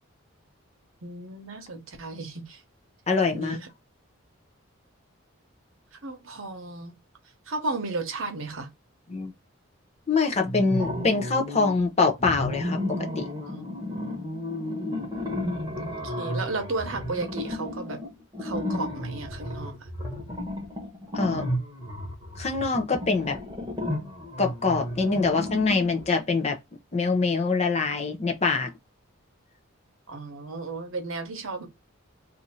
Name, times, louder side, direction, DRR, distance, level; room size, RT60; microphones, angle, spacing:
voice 1, 1.0-2.6 3.3-3.7 6.0-7.0 7.5-8.7 13.4-13.8 15.8-18.0 18.4-19.9 30.1-31.7, right 3 dB, 70° right, 0.9 m, -34 dB
voice 2, 3.1-3.6 9.1-9.3 10.1-13.3 21.1-21.5 22.4-23.4 24.4-26.6 26.9-28.7, left 4 dB, 30° left, 0.6 m, -24 dB
sound 1, 10.4-11.8 12.2-26.1, left 1 dB, 20° right, 1.1 m, -33 dB
2.6 x 2.5 x 4.2 m
head